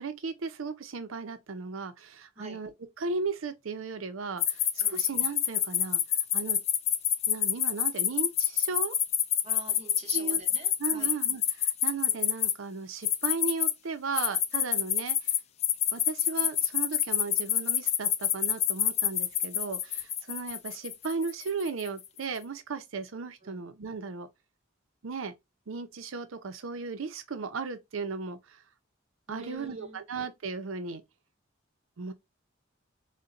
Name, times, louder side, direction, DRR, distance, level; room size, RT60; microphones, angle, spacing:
voice 1, 0.0-6.0 6.3-6.6 7.3-9.0 10.1-10.4 10.8-15.3 15.9-24.3 25.0-25.4 25.7-28.6 29.3-31.0 32.0-32.1, right 4 dB, 85° right, 0.6 m, -36 dB
sound 1, 4.4-12.5 13.0-13.7 14.2-22.0, left 10 dB, 35° left, 0.3 m, -26 dB
voice 2, 9.4-11.1 23.4-23.6 29.3-30.0, right 2 dB, 35° right, 0.9 m, -45 dB
4.0 x 2.2 x 2.4 m
head